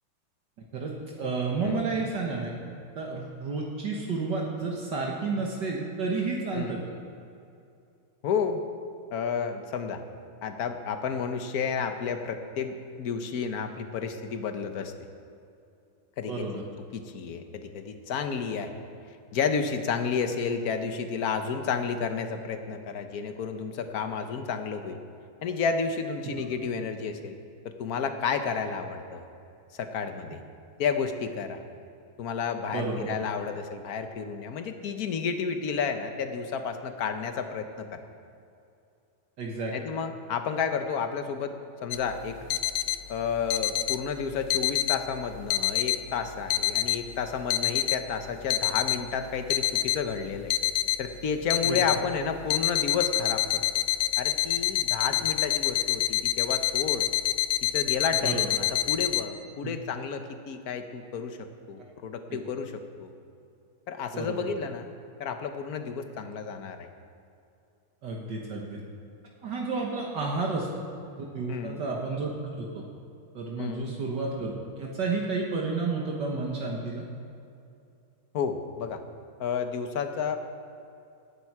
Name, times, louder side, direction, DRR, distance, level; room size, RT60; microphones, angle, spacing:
voice 1, 0.7-2.5 3.0-6.8 16.3-16.6 26.3-26.5 32.7-33.1 39.4-39.7 51.6-51.8 58.2-58.5 59.6-59.7 61.8-61.9 62.3-62.4 64.1-64.4 68.0-68.8 69.4-70.7 71.2-72.3 72.6-72.8 73.3-74.5 74.8-77.0, right 4 dB, 60° right, -1 dB, 2.0 m, -31 dB
voice 2, 8.2-8.6 9.1-10.0 10.4-14.9 16.2-16.6 16.9-18.8 19.3-25.0 25.4-27.4 27.6-29.2 29.8-30.4 30.8-31.6 32.2-38.0 39.7-41.6 41.8-42.4 43.1-50.5 51.0-53.6 54.2-57.1 57.6-61.4 61.7-63.1 63.9-64.9 65.2-66.9 71.5-71.8 73.6-73.9 78.3-79.0 79.4-80.4, left 6 dB, 55° left, 7 dB, 1.3 m, -31 dB
sound 1, 41.9-59.2, left 13 dB, 80° left, 1.3 m, -27 dB
18.0 x 11.5 x 4.8 m, 2.6 s
omnidirectional pair, 2.2 m